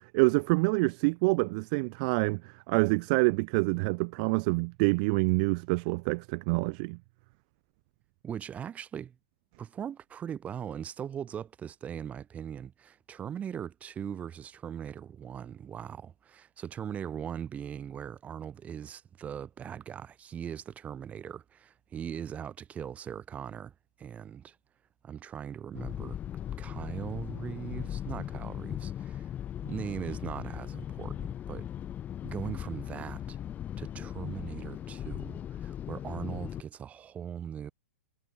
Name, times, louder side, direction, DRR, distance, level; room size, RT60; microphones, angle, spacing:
voice 1, 0.1-7.0, right 30 dB, 40° right, 0.3 m, -26 dB
voice 2, 8.2-9.2 9.6-24.5 25.0-26.2 26.6-29.3 29.6-31.7 32.2-33.4 33.8-37.7, right 8 dB, 20° right, 1.7 m, -40 dB
sound 1, 25.7-36.6, left 10 dB, 20° left, 2.5 m, -38 dB
hypercardioid pair, 130°, 7 cm